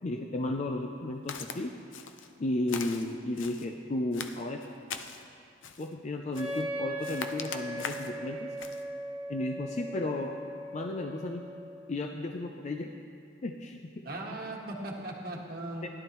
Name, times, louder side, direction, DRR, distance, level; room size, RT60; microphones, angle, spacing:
voice 1, 0.0-1.7 2.4-4.6 5.8-8.5 9.3-10.4 10.7-11.5 11.9-13.0 13.4-14.0 15.8-15.9, left 2 dB, 35° left, 3 dB, 0.4 m, -34 dB
Walk footsteps, 1.3-1.6 1.9-2.3 2.7-3.7 4.1-5.2 5.6-5.9 6.3-6.7 7.0-8.2 8.6-8.8, left 6 dB, 85° left, 0.6 m, -41 dB
Wind instrument woodwind instrument, 6.3-12.0, equal, 25° right, 1.4 m, -39 dB
voice 2, 14.0-15.9, right 1 dB, 55° right, -2 dB, 1.4 m, -38 dB
15.5 x 11.5 x 3.1 m, 2.5 s
head